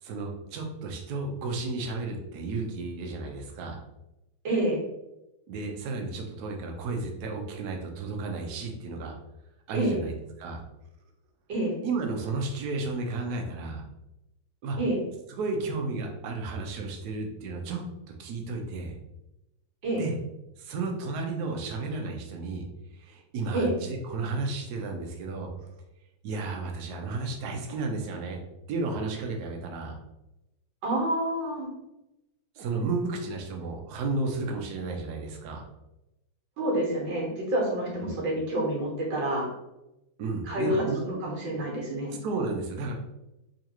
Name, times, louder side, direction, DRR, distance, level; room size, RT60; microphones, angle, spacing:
voice 1, 0.0-3.8 5.5-9.2 9.7-10.6 11.8-13.8 14.6-14.8 15.3-17.8 18.2-19.0 19.9-20.2 20.6-22.6 22.9-25.5 26.2-28.4 28.7-30.0 32.5-35.7 38.0-38.1 40.2-41.0 42.2-42.9, right 3 dB, 65° right, 2 dB, 1.1 m, -33 dB
voice 2, 4.4-4.8 9.7-10.0 11.5-11.7 14.8-15.0 19.8-20.0 23.5-23.7 30.8-31.7 36.6-39.5 40.5-42.1, right 1 dB, 85° right, -3 dB, 1.8 m, -28 dB
3.8 x 3.1 x 2.9 m, 0.91 s
omnidirectional pair, 2.0 m